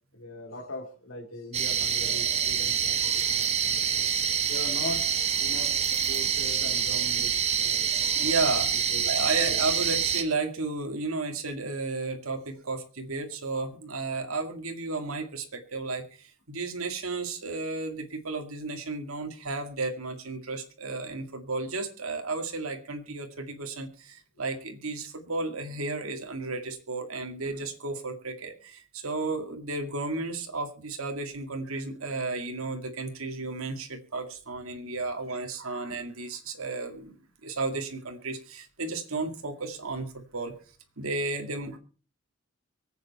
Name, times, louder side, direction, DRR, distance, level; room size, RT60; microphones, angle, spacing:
voice 1, 0.1-4.1 4.5-5.1 5.4-7.9 8.9-9.1 9.4-9.6, left 1 dB, 75° left, 2 dB, 2.7 m, -40 dB
sound 1, 1.5-10.2, right 7 dB, 30° right, 1.1 m, -26 dB
voice 2, 8.1-8.7 9.1-37.2 37.4-40.5 41.0-41.8, right 3 dB, 85° right, 4 dB, 2.2 m, -33 dB
24.0 x 8.4 x 4.2 m, 0.38 s
head